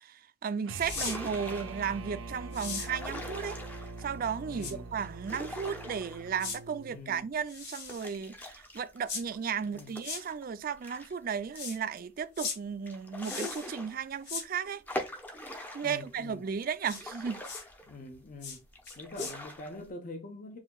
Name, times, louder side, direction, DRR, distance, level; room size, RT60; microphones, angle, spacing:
voice 1, 0.0-3.6 4.0-14.8 15.7-17.4, right 6 dB, 45° right, 0.3 m, -35 dB
sound 1, 0.6-7.0, right 3 dB, 75° right, 0.7 m, -43 dB
sound 2, 0.8-1.2 2.5-2.9 4.6-4.7 6.4-6.6 7.5-8.1 9.1-9.2 10.0-10.2 11.5-11.8 12.3-12.6 13.2-13.7 14.2-14.4 16.8-17.0 17.4-17.6 18.4-18.6 18.8-19.3, left 5 dB, 60° left, 2.1 m, -38 dB
sound 3, 1.0-2.0 2.7-4.2 5.0-6.6 7.0-7.1 7.9-11.1 11.6-11.7 12.0-12.1 12.9-14.4 14.9-16.1 16.6-18.3 18.7-19.9, left 1 dB, 10° left, 0.7 m, -42 dB
voice 2, 4.5-4.9 6.9-7.3 9.7-10.0 15.8-16.5 17.9-18.6 19.0-20.6, left 2 dB, 45° left, 0.7 m, -44 dB
7.3 x 2.8 x 2.3 m
head